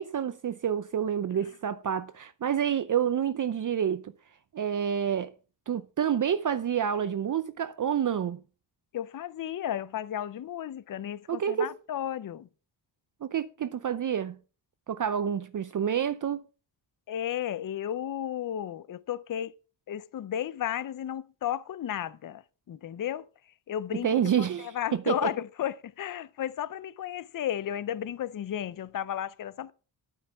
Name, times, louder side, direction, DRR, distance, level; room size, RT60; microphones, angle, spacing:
voice 1, 0.0-4.1 4.5-5.3 5.7-8.4 11.3-11.7 13.2-14.4 14.9-16.4 24.0-25.3, right 8 dB, 45° right, 0.6 m, -28 dB
voice 2, 8.9-12.5 17.1-19.5 19.9-23.3 23.7-29.7, left 10 dB, 50° left, 0.6 m, -33 dB
12.0 x 8.9 x 4.7 m
wide cardioid pair, 160°, 44 cm